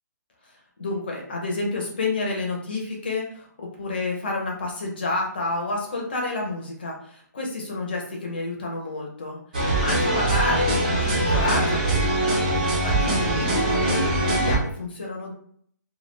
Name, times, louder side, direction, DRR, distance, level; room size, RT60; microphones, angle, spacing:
voice 1, 0.8-15.3, left 2 dB, 30° left, -1 dB, 0.5 m, -29 dB
sound 1, 9.5-14.6, right 1 dB, 25° right, 0.5 m, -22 dB
2.2 x 2.1 x 3.0 m, 0.62 s
hypercardioid pair, 180°, 10 cm